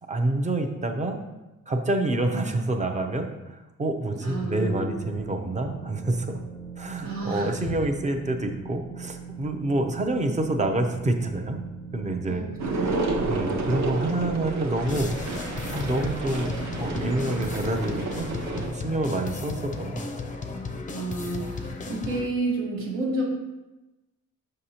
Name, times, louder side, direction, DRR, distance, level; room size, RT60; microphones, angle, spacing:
voice 1, 0.1-1.2 1.7-6.4 6.8-11.6 11.9-12.5 13.2-16.5 16.8-20.1, right 2 dB, 20° right, 5 dB, 0.6 m, -27 dB
voice 2, 4.2-5.0 7.0-7.7 12.3-13.3 20.9-23.2, right 2 dB, 85° right, -2 dB, 1.6 m, -31 dB
sound 1, 4.3-15.9, right 5 dB, 70° right, 1.1 m, -41 dB
sound 2, 12.6-18.7, right 3 dB, 55° right, 0.8 m, -30 dB
sound 3, 14.9-22.3, left 3 dB, 25° left, 0.5 m, -35 dB
6.4 x 5.5 x 2.9 m, 1.1 s
wide cardioid pair, 140°, 33 cm